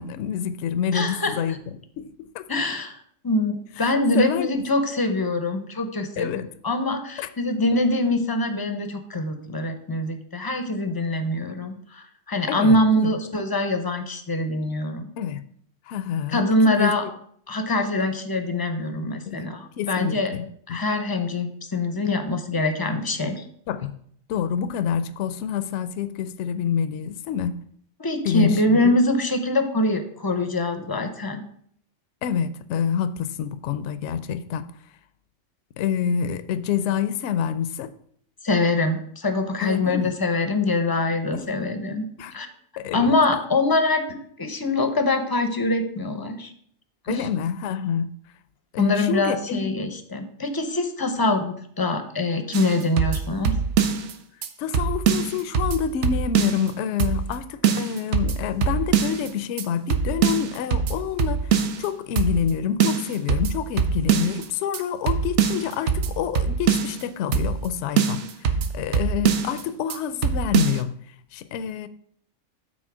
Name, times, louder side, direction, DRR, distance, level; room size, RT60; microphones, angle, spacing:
voice 1, 0.0-1.6 2.0-2.4 3.8-4.7 6.2-6.5 7.2-7.3 11.4-11.5 12.5-13.1 15.2-15.4 15.9-16.4 16.7-17.1 19.3-20.8 23.7-23.9 24.3-27.6 28.2-28.9 32.2-34.7 35.8-37.9 39.6-40.1 41.3-41.6 42.2-42.3 42.8-43.2 47.1-48.1 48.7-49.7 54.6-70.9 71.3-71.9, left 8 dB, 65° left, 0.8 m, -27 dB
voice 2, 0.9-1.6 2.5-3.0 3.2-15.1 16.3-17.0 17.5-20.3 20.7-23.4 28.0-31.4 38.4-42.1 42.3-42.5 42.9-46.5 47.1-47.3 48.8-53.5, left 2 dB, 25° left, 0.5 m, -24 dB
sound 1, 52.5-54.1 54.4-54.5 54.7-56.7 57.0-57.4 57.6-59.3 59.6-59.7 59.9-61.9 62.2-62.5 62.8-64.5 64.7-64.8 65.1-67.0 67.3-67.7 68.0-69.6 69.9-70.0 70.2-70.8, right 7 dB, 65° right, 0.9 m, -23 dB
6.2 x 4.2 x 6.0 m
omnidirectional pair, 1.4 m